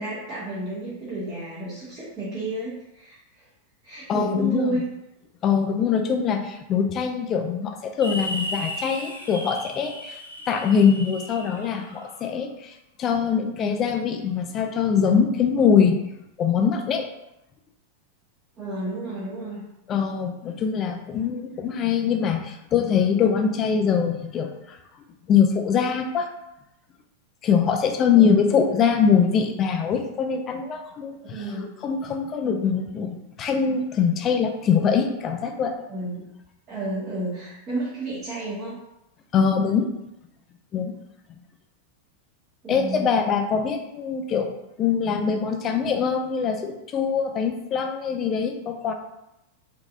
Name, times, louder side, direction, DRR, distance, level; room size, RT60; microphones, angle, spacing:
voice 1, 0.0-3.2 3.8-4.8 18.6-19.6 28.1-28.4 31.2-31.7 35.9-36.2 36.7-38.7 42.6-43.1, right 1 dB, 35° right, -9 dB, 1.4 m, -31 dB
voice 2, 4.1-4.8 5.4-10.2 10.5-16.0 16.4-17.0 19.9-24.8 25.3-26.3 27.4-31.6 31.8-35.7 39.3-39.9 40.7-40.9 42.7-44.5 44.8-48.9, left 6 dB, 30° left, 4 dB, 0.5 m, -23 dB
sound 1, 8.0-12.2, equal, 80° left, 0.6 m, -35 dB
3.8 x 2.9 x 2.5 m, 0.88 s
figure-of-eight pair, 90°, 0 cm